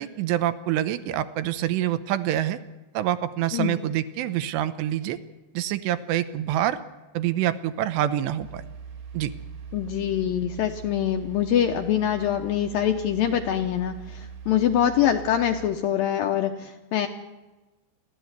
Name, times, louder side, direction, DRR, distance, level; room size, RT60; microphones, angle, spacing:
voice 1, 0.0-2.6 2.9-5.2 5.5-6.8 7.1-8.6 9.1-9.3, right 12 dB, 80° right, 12 dB, 2.9 m, -26 dB
sound 1, 8.4-15.7, right 7 dB, 60° right, 3.9 m, -41 dB
voice 2, 9.7-17.1, left 10 dB, 75° left, 6 dB, 2.2 m, -24 dB
29.0 x 12.0 x 8.2 m, 1.1 s
omnidirectional pair, 5.1 m